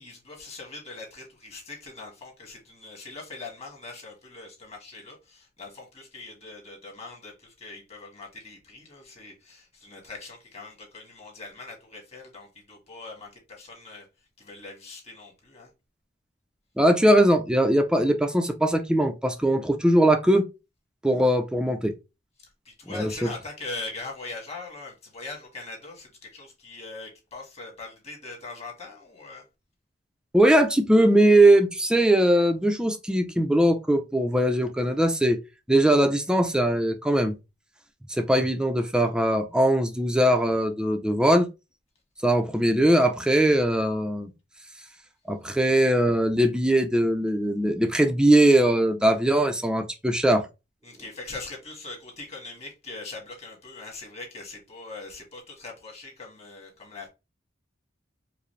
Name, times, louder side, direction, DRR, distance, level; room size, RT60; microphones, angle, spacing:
voice 1, 0.0-14.1 14.4-15.7 22.6-29.4 50.8-57.1, left 3 dB, 35° left, 1.6 m, -41 dB
voice 2, 16.8-20.4 21.0-21.9 22.9-23.3 30.3-35.4 35.7-37.4 38.1-41.5 42.2-44.3 45.3-50.5, right 1 dB, 5° right, 0.4 m, -21 dB
4.9 x 2.0 x 3.1 m
head